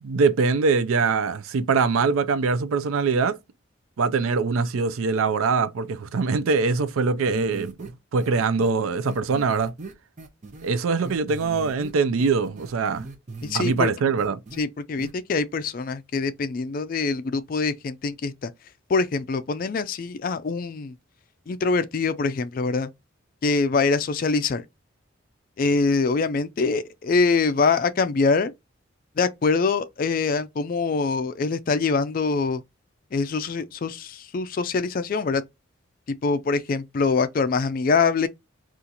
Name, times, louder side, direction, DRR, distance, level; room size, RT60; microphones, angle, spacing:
voice 1, 0.0-3.4 4.0-9.7 10.6-13.1 13.5-14.4, right 4 dB, 90° right, 0.4 m, -23 dB
sound 1, 7.3-7.9 8.2-8.3 8.6-8.7 9.0-10.7 11.0-11.9 12.2-13.9 14.2-14.6 15.0-15.1, right 3 dB, 35° right, 0.5 m, -38 dB
voice 2, 13.4-13.9 14.6-18.5 18.9-20.9 21.5-22.9 23.4-24.7 25.6-28.5 29.2-32.6 33.1-35.4 36.1-38.3, left 4 dB, 40° left, 0.3 m, -24 dB
2.8 x 2.4 x 3.8 m
head